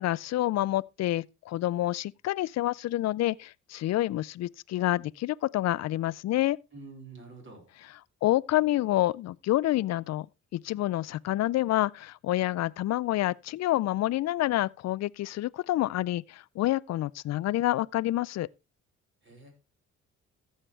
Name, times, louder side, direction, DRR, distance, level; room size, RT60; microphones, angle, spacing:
voice 1, 0.0-6.6 8.2-10.3 10.5-18.5, left 15 dB, 60° left, 0.5 m, -28 dB
voice 2, 6.7-7.7 19.2-19.5, right 3 dB, 40° right, 5.2 m, -47 dB
14.5 x 7.4 x 3.3 m
cardioid pair, 90°, 30 cm